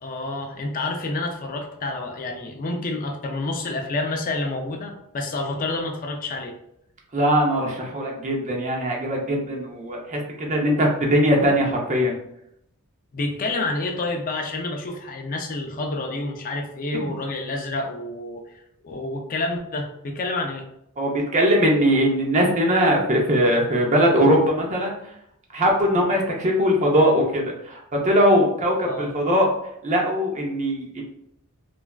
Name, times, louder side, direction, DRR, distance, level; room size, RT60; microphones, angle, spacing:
voice 1, 0.0-6.5 10.7-10.8 13.1-18.6 18.8-20.7 28.9-29.1, left 2 dB, 40° left, 3 dB, 0.4 m, -29 dB
voice 2, 7.1-12.1 21.0-25.0 25.5-27.8 28.0-29.5 29.8-31.0, equal, 35° right, 0 dB, 0.6 m, -20 dB
3.2 x 2.4 x 2.3 m, 0.76 s
head